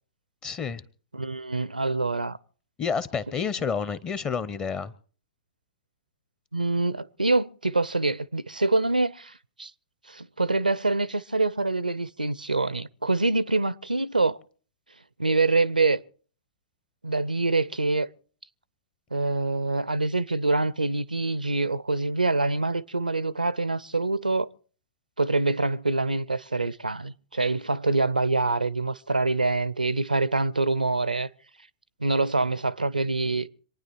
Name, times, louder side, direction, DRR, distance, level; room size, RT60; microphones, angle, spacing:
voice 1, 0.4-0.8 2.8-4.9, left 6 dB, 20° left, 0.7 m, -29 dB
voice 2, 1.1-2.4 6.5-9.7 10.1-14.4 15.2-16.0 17.0-18.1 19.1-24.5 25.2-31.3 32.0-33.5, right 3 dB, 80° right, 0.6 m, -25 dB
26.5 x 9.7 x 4.5 m
figure-of-eight pair, 110°, 4 cm